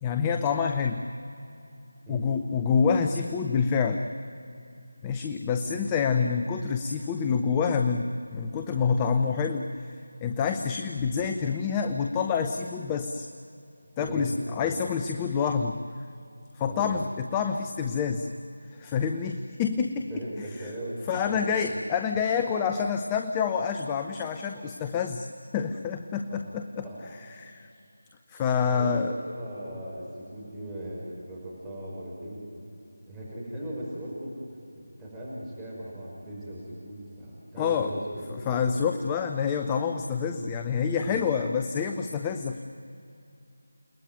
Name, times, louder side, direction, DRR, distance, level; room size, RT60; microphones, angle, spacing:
voice 1, 0.0-1.0 2.1-4.0 5.0-9.8 10.2-13.3 14.0-15.8 16.5-18.3 18.7-20.1 21.1-25.3 25.5-26.8 27.4-27.7 28.3-29.1 37.6-37.9 38.3-42.6, left 6 dB, 15° left, 6 dB, 0.8 m, -27 dB
voice 2, 14.0-14.8 16.7-17.0 20.1-21.7 26.3-26.4 26.8-27.0 28.7-32.5 33.0-34.3 34.7-38.7 41.0-41.2, right 1 dB, 5° right, -9 dB, 6.0 m, -38 dB
29.5 x 20.5 x 9.3 m, 2.6 s
figure-of-eight pair, 160°, 0 cm